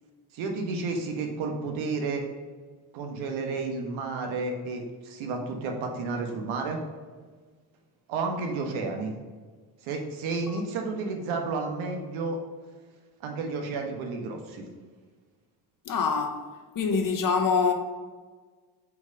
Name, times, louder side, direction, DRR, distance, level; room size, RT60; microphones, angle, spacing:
voice 1, 0.3-2.2 2.9-6.8 8.1-9.1 9.8-12.4 13.2-14.7, right 3 dB, 65° right, 1.3 m, -31 dB
voice 2, 15.8-16.4 16.7-17.7, left 5 dB, 40° left, 1.1 m, -25 dB
4.7 x 4.3 x 4.9 m
hypercardioid pair, 60°, 50 cm